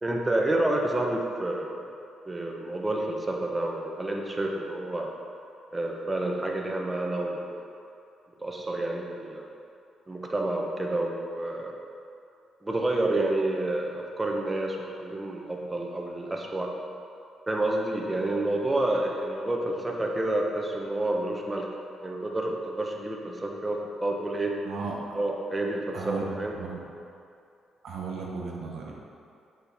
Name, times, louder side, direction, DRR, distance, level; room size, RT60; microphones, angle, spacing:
voice 1, 0.0-1.8 2.3-5.1 5.7-7.7 8.4-9.5 10.1-11.7 12.6-16.7 17.5-21.7 22.0-24.6 25.1-26.5, right 1 dB, 20° right, 0 dB, 0.9 m, -29 dB
voice 2, 24.6-25.1 25.9-26.8 27.8-28.9, right 4 dB, 70° right, -1 dB, 1.0 m, -35 dB
7.8 x 4.5 x 3.4 m, 2.5 s
cardioid pair, 90°, 0 cm